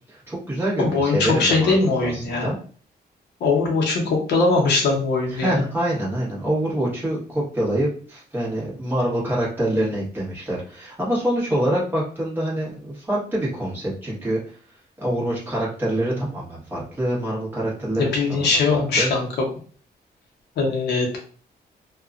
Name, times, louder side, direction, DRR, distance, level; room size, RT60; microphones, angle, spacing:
voice 1, 0.1-2.5 5.3-14.6 15.0-19.1, right 1 dB, 15° right, -7 dB, 1.3 m, -26 dB
voice 2, 0.8-2.5 3.4-5.6 18.0-19.3 20.6-21.2, left 3 dB, 85° left, 0 dB, 0.9 m, -21 dB
2.9 x 2.3 x 2.5 m, 0.42 s
wide cardioid pair, 175°, 17 cm